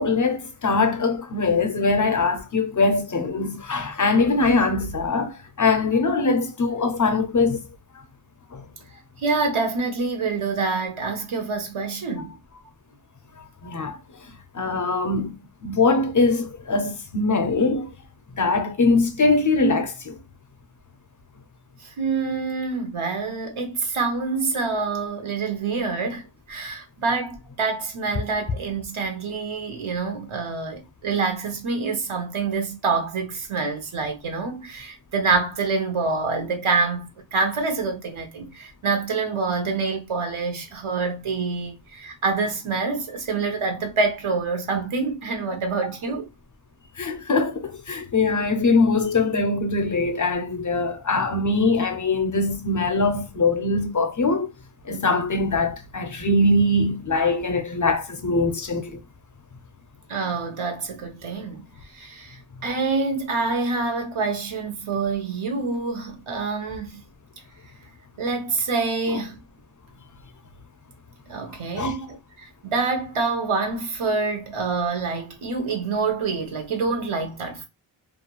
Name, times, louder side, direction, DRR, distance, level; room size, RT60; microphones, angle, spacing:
voice 1, 0.0-7.6 13.6-14.0 14.5-15.3 15.6-17.9 18.4-20.2 47.0-54.5 54.9-59.0 71.8-72.0, left 3 dB, 40° left, 0.5 m, -22 dB
voice 2, 9.2-12.3 22.0-46.3 60.1-61.7 61.9-67.0 68.2-69.4 71.3-77.7, right 4 dB, 80° right, 0.9 m, -26 dB
2.4 x 2.2 x 2.9 m
wide cardioid pair, 95°, 48 cm